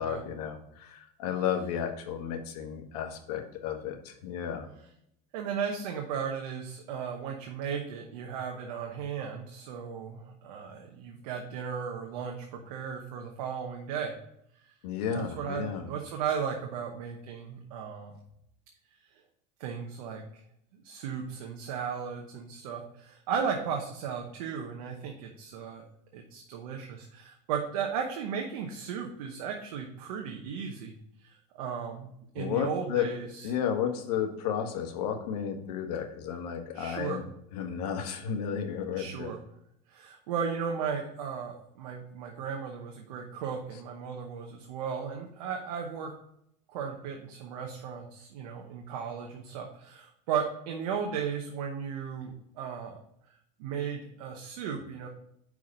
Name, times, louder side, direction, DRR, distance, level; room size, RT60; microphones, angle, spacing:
voice 1, 0.0-4.7 14.8-15.9 32.4-33.0 33.4-37.3 37.5-39.3, left 8 dB, 90° left, 4 dB, 1.3 m, -33 dB
voice 2, 5.3-14.2 15.1-18.2 19.6-20.4 20.8-25.8 26.1-30.9 31.2-33.5 36.7-37.2 39.0-39.4 39.9-46.1 46.7-53.0 53.6-55.1, right 7 dB, 85° right, 2 dB, 1.0 m, -35 dB
5.7 x 4.7 x 5.2 m, 0.74 s
supercardioid pair, 130°, 20 cm